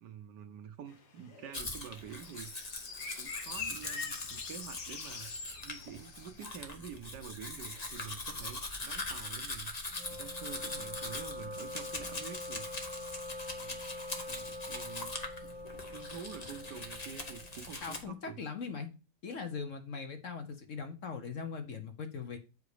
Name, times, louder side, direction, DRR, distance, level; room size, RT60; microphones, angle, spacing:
voice 1, 0.0-2.5 3.1-5.3 5.6-9.7 10.1-12.7 13.5-13.8 14.3-15.1 15.4-15.5 15.9-18.4, right 8 dB, 75° right, 1.5 m, -47 dB
sound 1, 0.9-6.4, left 4 dB, 70° left, 1.8 m, -44 dB
Domestic sounds home sounds, 1.5-18.0, left 2 dB, 25° left, 1.0 m, -42 dB
Wind instrument woodwind instrument, 9.9-17.7, left 2 dB, 5° right, 2.5 m, -44 dB
voice 2, 17.8-18.9 19.2-22.4, left 5 dB, 50° left, 1.2 m, -40 dB
7.8 x 5.1 x 4.9 m
omnidirectional pair, 1.9 m